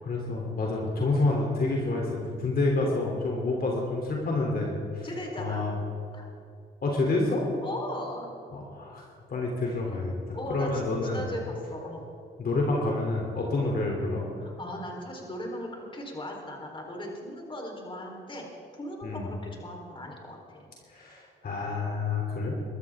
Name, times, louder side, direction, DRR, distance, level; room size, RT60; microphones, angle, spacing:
voice 1, 0.0-5.1 5.4-5.7 6.8-7.5 8.5-9.0 9.3-11.2 12.4-14.5 19.0-19.3 20.9-22.6, left 2 dB, 50° left, -1 dB, 3.3 m, -28 dB
voice 2, 5.0-5.6 6.1-6.3 7.6-8.3 10.3-12.0 14.4-18.4 18.8-20.7, left 1 dB, 25° left, 0 dB, 4.1 m, -38 dB
23.0 x 13.0 x 3.7 m, 2.4 s
cardioid pair, 90°, 20 cm